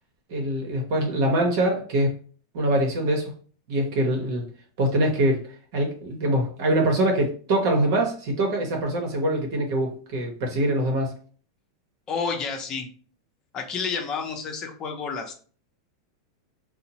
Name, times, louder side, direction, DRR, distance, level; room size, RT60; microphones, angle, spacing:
voice 1, 0.3-2.2 2.5-3.3 3.7-4.4 4.8-5.4 5.7-11.1, right 1 dB, 60° right, 0.8 m, -24 dB
voice 2, 12.1-12.9 13.5-15.3, left 5 dB, 30° left, 0.7 m, -30 dB
2.8 x 2.0 x 2.8 m
supercardioid pair, 135°, 2 cm